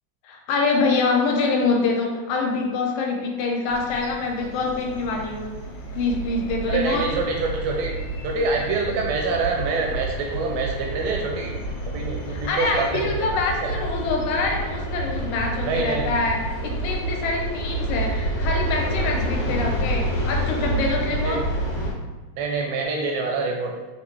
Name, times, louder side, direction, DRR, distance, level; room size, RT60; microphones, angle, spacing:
voice 1, 0.2-5.5 5.9-7.0 12.3-21.4, left 3 dB, 90° left, 1 dB, 2.0 m, -25 dB
sound 1, 3.7-21.9, right 1 dB, 65° left, 1.7 m, -29 dB
voice 2, 6.7-7.9 8.2-11.6 11.9-13.7 15.7-16.1 21.2-21.5 22.4-23.7, right 3 dB, 80° right, 0 dB, 1.6 m, -26 dB
5.4 x 2.4 x 3.3 m, 1.2 s
omnidirectional pair, 3.3 m